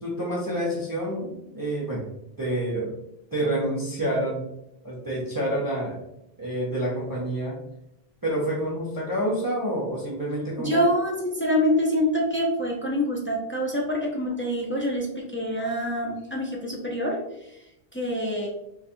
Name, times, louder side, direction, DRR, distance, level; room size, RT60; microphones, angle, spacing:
voice 1, 0.0-2.1 2.4-2.9 3.3-4.5 4.8-6.0 6.4-7.6 8.2-10.8, right 1 dB, 25° right, -5 dB, 0.6 m, -28 dB
voice 2, 10.6-17.6 17.9-18.5, equal, 20° left, -2 dB, 0.3 m, -26 dB
4.2 x 2.4 x 2.6 m, 0.84 s
omnidirectional pair, 1.0 m